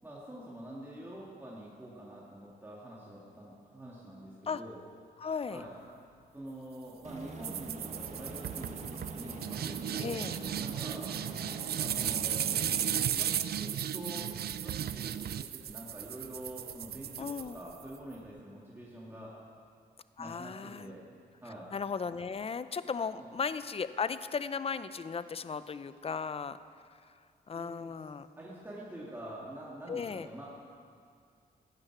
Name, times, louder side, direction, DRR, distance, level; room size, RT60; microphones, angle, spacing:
voice 1, 0.0-4.8 5.5-5.8 6.3-10.3 10.6-11.1 11.8-19.3 20.2-21.0 21.4-21.7 23.2-23.3 27.5-27.9 28.4-30.4, right 1 dB, 10° right, -6 dB, 2.4 m, -46 dB
voice 2, 5.2-5.6 10.0-10.4 17.2-17.6 20.2-20.9 21.7-26.6 27.5-28.3 29.9-30.3, left 5 dB, 35° left, 13 dB, 0.6 m, -36 dB
Aircraft, 7.0-13.0, right 3 dB, 40° right, 1.7 m, -44 dB
sound 1, 7.4-18.0, right 10 dB, 65° right, 0.5 m, -35 dB
16.0 x 9.7 x 6.1 m, 2.2 s
cardioid pair, 85°, 17 cm